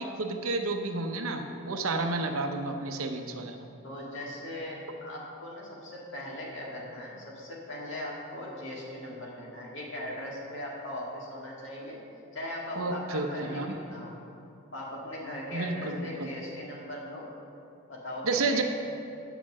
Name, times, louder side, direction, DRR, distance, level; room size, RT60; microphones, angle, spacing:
voice 1, 0.0-3.6 12.7-13.7 15.5-16.3 18.2-18.6, right 3 dB, 75° right, 5 dB, 0.8 m, -31 dB
voice 2, 3.8-12.0 12.3-14.2 14.7-17.3 17.9-18.6, left 1 dB, 60° left, -3 dB, 2.0 m, -39 dB
8.5 x 6.0 x 7.5 m, 2.7 s
head